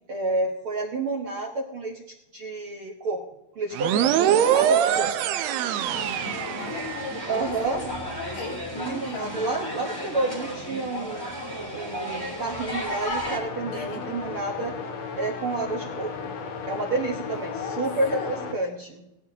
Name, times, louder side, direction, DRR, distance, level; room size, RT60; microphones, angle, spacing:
voice 1, 0.1-2.0 2.3-3.2 3.5-5.1 7.3-7.9 8.7-11.3 11.7-14.7 15.2-16.3 16.7-19.0, right 2 dB, 60° right, -1 dB, 1.5 m, -29 dB
sound 1, 3.7-7.2, right 10 dB, 80° right, 1.6 m, -23 dB
sound 2, 5.8-13.4, equal, 5° left, 2.6 m, -34 dB
voice 2, 6.0-9.4 13.7-14.1 17.2-18.4, left 3 dB, 75° left, -5 dB, 7.3 m, -37 dB
sound 3, 13.2-18.5, left 5 dB, 55° left, 2.2 m, -35 dB
18.0 x 12.5 x 2.8 m, 0.89 s
omnidirectional pair, 3.9 m